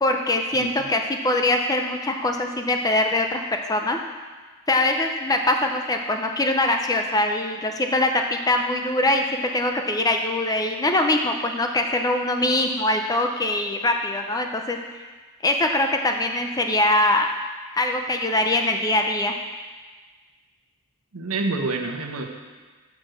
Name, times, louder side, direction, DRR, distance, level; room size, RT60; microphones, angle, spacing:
voice 1, 0.0-3.4 3.7-4.0 4.7-14.8 15.4-17.3 17.7-19.3, left 1 dB, 15° left, 4 dB, 0.5 m, -22 dB
voice 2, 21.1-22.2, right 3 dB, 75° right, 3 dB, 0.9 m, -27 dB
6.7 x 6.2 x 6.4 m, 1.4 s
head